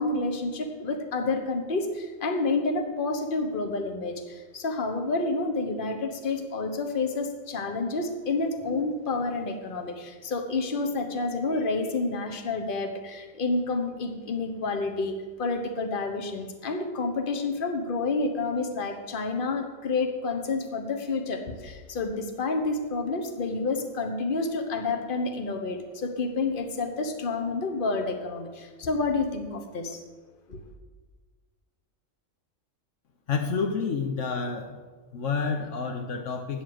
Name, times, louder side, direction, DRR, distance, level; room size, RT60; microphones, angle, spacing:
voice 1, 0.0-30.0 30.5-30.6, left 3 dB, 45° left, 4 dB, 1.2 m, -29 dB
voice 2, 33.3-34.8 35.1-36.6, left 5 dB, 70° left, 4 dB, 1.1 m, -29 dB
8.8 x 7.1 x 7.7 m, 1.4 s
omnidirectional pair, 1.4 m